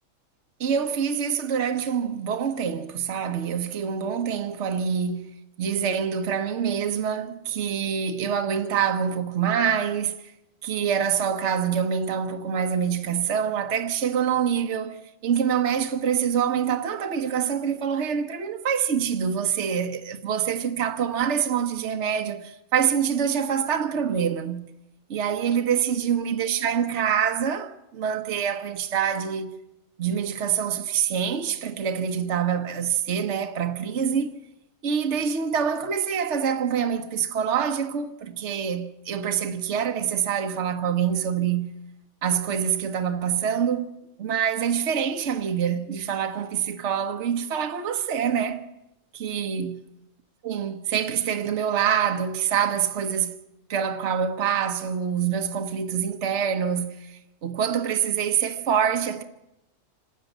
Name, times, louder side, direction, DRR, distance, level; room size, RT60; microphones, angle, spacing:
voice 1, 0.6-10.3 10.6-24.7 25.1-29.5 30.0-34.3 34.8-41.7 42.2-43.9 44.2-48.6 49.1-49.8 50.4-53.3 53.7-59.2, right 8 dB, 60° right, 1.3 m, -26 dB
26.5 x 13.0 x 9.0 m
omnidirectional pair, 1.3 m